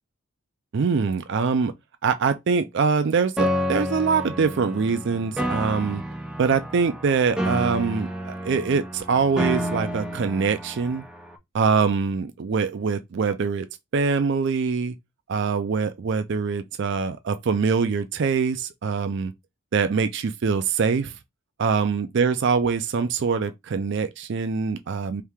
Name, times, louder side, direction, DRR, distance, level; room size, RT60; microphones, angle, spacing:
voice 1, 0.7-1.7 2.0-6.0 6.4-11.0 11.5-13.7 13.9-15.0 15.3-19.3 19.7-21.1 21.6-25.2, right 5 dB, 50° right, 0.4 m, -24 dB
Piano, 3.4-11.4, equal, 5° right, 0.5 m, -30 dB
4.6 x 2.7 x 3.5 m
head